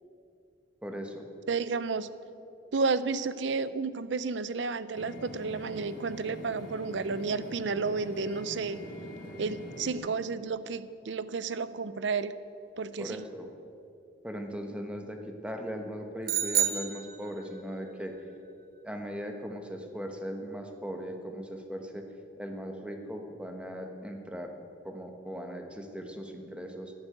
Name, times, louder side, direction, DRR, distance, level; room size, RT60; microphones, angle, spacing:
voice 1, 0.8-1.3 13.0-13.5 14.2-18.1 18.8-22.1 22.4-24.5 24.8-26.9, equal, 5° right, 4 dB, 1.2 m, -39 dB
voice 2, 1.5-2.1 2.7-8.8 9.4-12.3 12.8-13.2, right 4 dB, 65° right, 15 dB, 0.6 m, -31 dB
sound 1, 4.9-9.9, left 1 dB, 45° left, 2.6 m, -44 dB
sound 2, 16.3-17.7, right 10 dB, 50° right, 0.9 m, -29 dB
11.5 x 9.8 x 9.0 m, 2.6 s
head